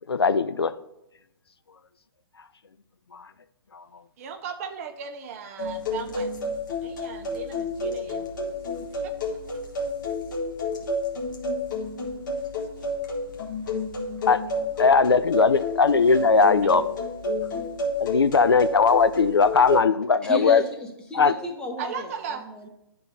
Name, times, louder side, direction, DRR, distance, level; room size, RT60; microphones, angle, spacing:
voice 1, 0.1-0.7 3.1-3.2 3.7-3.8 14.3-14.4 14.8-16.8 18.0-20.6 21.2-21.3, left 5 dB, 80° left, 13 dB, 0.4 m, -19 dB
voice 2, 4.2-6.3 6.8-8.3 8.8-9.1 16.6-16.7 21.8-22.5, right 6 dB, 35° right, 7 dB, 0.7 m, -37 dB
sound 1, 5.6-19.8, left 2 dB, 50° left, 1.5 m, -30 dB
voice 3, 20.2-22.7, left 1 dB, 5° left, 1 dB, 1.0 m, -34 dB
10.5 x 3.7 x 4.1 m, 0.86 s
figure-of-eight pair, 125°, 13 cm